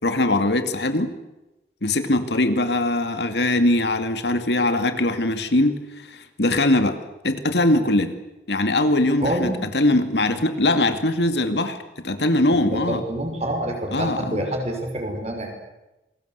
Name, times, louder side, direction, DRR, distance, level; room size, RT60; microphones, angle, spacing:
voice 1, 0.0-1.1 1.8-5.8 6.1-8.1 8.5-11.8 12.0-13.0 13.9-14.5, left 1 dB, 75° left, 9 dB, 2.3 m, -21 dB
voice 2, 9.2-9.6 12.7-15.5, right 1 dB, 35° right, 3 dB, 5.9 m, -27 dB
28.5 x 21.0 x 8.2 m, 0.99 s
head